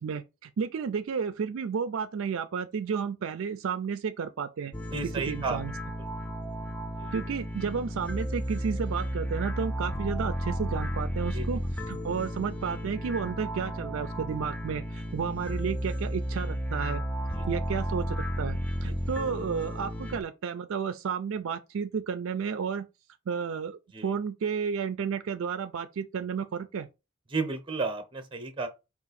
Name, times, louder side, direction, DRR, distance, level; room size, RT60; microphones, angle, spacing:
voice 1, 0.0-4.7 5.3-5.7 7.1-11.6 11.9-17.0 17.5-22.9 23.3-26.9, right 6 dB, 65° right, 0.4 m, -32 dB
sound 1, 4.7-20.2, equal, 5° left, 0.3 m, -33 dB
voice 2, 4.9-5.6 6.0-6.1 7.0-7.1 11.3-11.5 17.3-17.5 18.8-19.0 23.9-24.1 27.3-28.7, right 3 dB, 25° right, 0.8 m, -33 dB
4.7 x 2.4 x 4.0 m
head